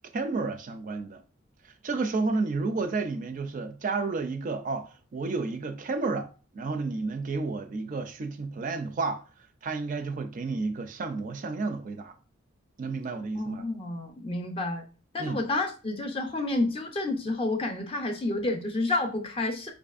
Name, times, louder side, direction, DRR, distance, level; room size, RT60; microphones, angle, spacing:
voice 1, 0.1-1.2 1.6-6.3 6.5-9.2 9.6-12.2 12.8-13.6 15.2-15.4, right 3 dB, 40° right, 0.4 m, -31 dB
voice 2, 13.3-14.8 15.1-19.7, left 2 dB, 25° left, 0.5 m, -30 dB
4.7 x 2.5 x 2.4 m
head